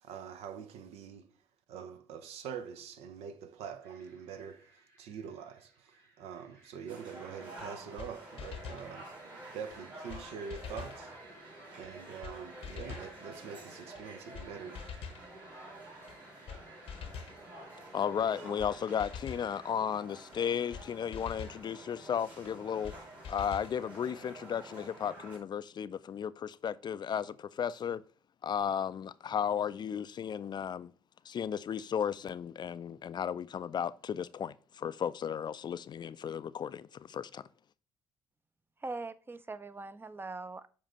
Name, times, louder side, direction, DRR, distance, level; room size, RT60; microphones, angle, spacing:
voice 1, 0.0-1.3 1.7-9.2 9.5-11.1 11.8-14.8, right 7 dB, 70° right, 0.6 m, -44 dB
sound 1, 3.8-19.7, right 2 dB, 85° right, 1.7 m, -58 dB
sound 2, 6.9-25.4, right 1 dB, 50° right, 3.4 m, -50 dB
sound 3, 7.6-7.7 8.0-8.1 8.4-8.9 9.7-9.8 10.1-10.2 10.5-11.0 11.8-11.9 12.2-12.4 12.6-13.1 13.9-14.0 14.3-14.5 14.7-15.2 16.1-16.2 16.5-16.6 16.9-17.4 18.2-18.3 18.6-18.7 19.0-19.5 20.3-20.4 20.7-20.9 21.1-21.6 22.4-22.5 22.8-23.0 23.2-23.7, left 6 dB, 60° left, 0.8 m, -44 dB
voice 2, 17.9-22.9 23.3-28.0 28.4-30.9 31.3-37.4, left 8 dB, 45° left, 0.4 m, -34 dB
voice 3, 38.8-40.7, right 3 dB, 20° right, 0.5 m, -41 dB
7.2 x 2.6 x 5.4 m
hypercardioid pair, 50°, 11 cm